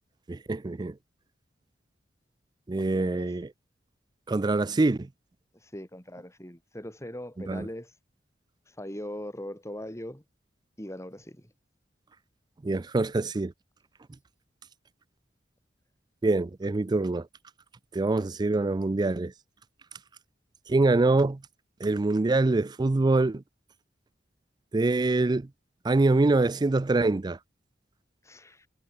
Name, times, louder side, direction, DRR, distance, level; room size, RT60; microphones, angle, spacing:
voice 1, 0.3-0.9 2.7-3.5 4.3-5.1 7.5-7.7 12.6-13.5 16.2-17.3 17.9-19.3 20.7-21.4 21.8-23.4 24.7-25.5 25.8-27.4, right 2 dB, 25° right, 0.4 m, -24 dB
voice 2, 2.8-3.3 5.5-7.9 8.7-10.2 10.8-11.5 28.2-28.7, left 1 dB, 15° left, 7.2 m, -40 dB
head